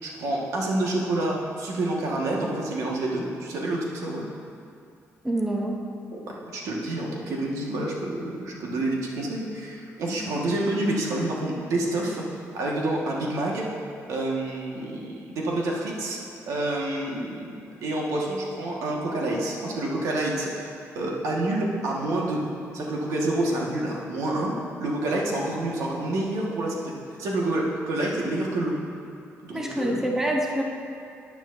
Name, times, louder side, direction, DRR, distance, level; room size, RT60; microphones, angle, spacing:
voice 1, 0.0-4.3 6.1-12.2 12.5-13.6 14.1-16.2 16.5-22.4 22.7-24.5 24.8-26.9 27.2-28.7 29.4-30.0, right 2 dB, 85° right, -2 dB, 1.5 m, -28 dB
voice 2, 5.2-5.8 29.5-30.6, right 1 dB, 10° right, 0 dB, 0.7 m, -26 dB
12.5 x 9.1 x 2.6 m, 2.5 s
cardioid pair, 160°, 5 cm